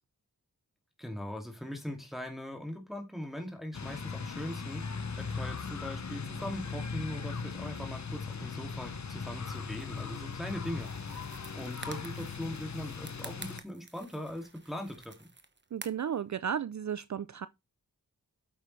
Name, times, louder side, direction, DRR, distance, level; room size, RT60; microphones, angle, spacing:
voice 1, 1.0-4.8 5.2-10.9 11.5-15.3, left 1 dB, ahead, 2.5 m, -40 dB
sound 1, 3.7-13.6, left 5 dB, 50° left, 1.0 m, -39 dB
sound 2, 10.8-16.2, right 3 dB, 30° right, 1.2 m, -50 dB
voice 2, 15.7-17.5, right 8 dB, 50° right, 0.5 m, -34 dB
8.5 x 7.3 x 3.3 m
cardioid pair, 40°, 36 cm